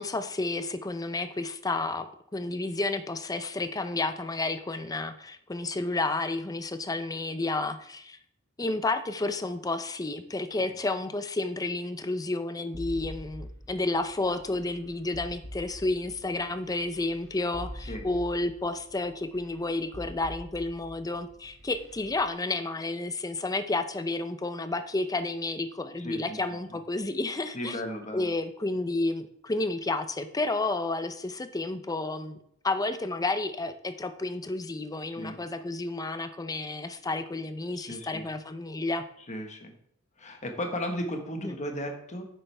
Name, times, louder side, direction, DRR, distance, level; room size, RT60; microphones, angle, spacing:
voice 1, 0.0-8.2 8.6-27.8 28.1-32.4 32.6-39.0 41.4-41.6, left 2 dB, 20° left, 9 dB, 0.6 m, -31 dB
sound 1, 12.7-22.3, equal, 85° right, 4.2 m, -44 dB
voice 2, 26.0-26.4 27.5-28.3 35.1-35.4 37.8-38.2 39.3-39.7 40.2-42.2, equal, 35° left, 4 dB, 1.4 m, -35 dB
9.7 x 7.6 x 3.4 m, 0.70 s
head